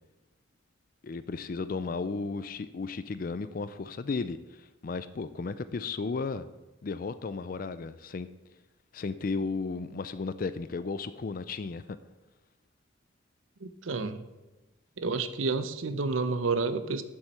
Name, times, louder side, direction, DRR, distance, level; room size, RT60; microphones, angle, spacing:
voice 1, 1.0-6.5 6.8-8.3 8.9-12.0, left 4 dB, 45° left, 13 dB, 0.4 m, -34 dB
voice 2, 13.6-14.3 15.0-17.0, right 4 dB, 80° right, 11 dB, 0.7 m, -30 dB
7.3 x 7.2 x 6.6 m, 1.1 s
head